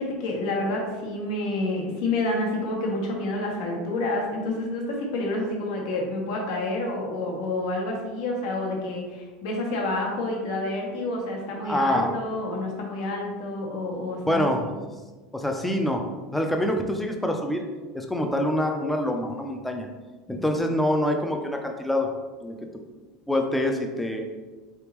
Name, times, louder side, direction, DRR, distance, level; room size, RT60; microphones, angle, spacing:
voice 1, 0.0-14.7, left 2 dB, 75° left, -1 dB, 1.0 m, -29 dB
voice 2, 11.6-12.1 14.2-14.7 15.3-16.0 16.3-17.7 17.9-19.9 20.3-22.1 22.4-22.6 23.3-24.3, left 1 dB, 5° left, 3 dB, 0.4 m, -25 dB
3.9 x 3.5 x 3.0 m, 1.3 s
supercardioid pair, 145°, 3 cm